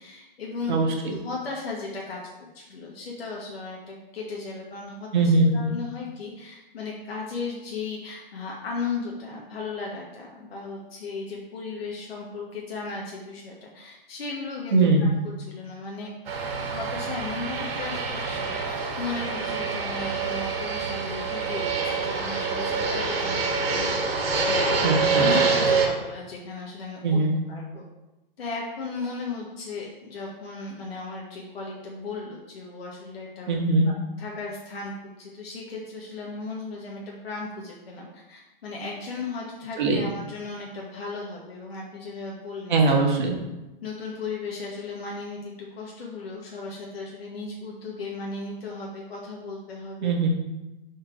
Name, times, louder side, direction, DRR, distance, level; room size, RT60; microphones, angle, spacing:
voice 1, 0.0-0.8 1.1-2.2 2.5-14.9 15.2-16.1 16.7-24.1 24.5-27.2 27.5-27.8 28.4-33.5 33.8-34.9 35.2-43.0 43.8-50.1, left 4 dB, 90° left, -3 dB, 1.3 m, -36 dB
voice 2, 0.7-1.1 5.1-5.7 14.7-15.1 24.8-25.3 27.0-27.4 33.5-33.9 39.8-40.0 42.7-43.4 50.0-50.3, right 3 dB, 55° right, 0 dB, 1.4 m, -21 dB
Fixed-wing aircraft airplane, 16.3-25.9, right 4 dB, 85° right, 1.5 m, -26 dB
4.5 x 4.4 x 5.0 m, 1.0 s
hypercardioid pair, 175°, 29 cm